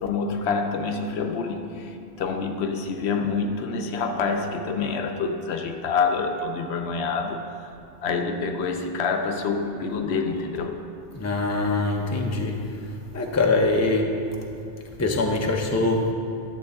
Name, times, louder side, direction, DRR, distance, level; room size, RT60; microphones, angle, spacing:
voice 1, 0.0-7.7 8.0-10.8, left 4 dB, 70° left, 5 dB, 0.9 m, -27 dB
voice 2, 11.1-12.7 13.1-14.3 15.0-16.1, left 2 dB, 20° left, 2 dB, 0.6 m, -23 dB
11.0 x 7.2 x 3.5 m, 2.7 s
omnidirectional pair, 1.2 m